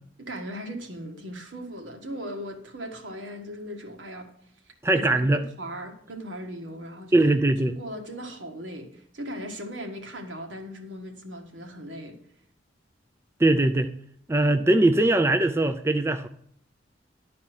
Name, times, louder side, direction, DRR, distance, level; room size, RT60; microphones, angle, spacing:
voice 1, 0.2-4.3 4.9-7.4 7.7-12.2, equal, 75° right, 2 dB, 1.7 m, -38 dB
voice 2, 4.8-5.4 7.1-7.7 13.4-13.9 14.3-16.3, right 2 dB, 15° right, 8 dB, 0.4 m, -21 dB
11.5 x 4.3 x 7.9 m, 0.66 s
head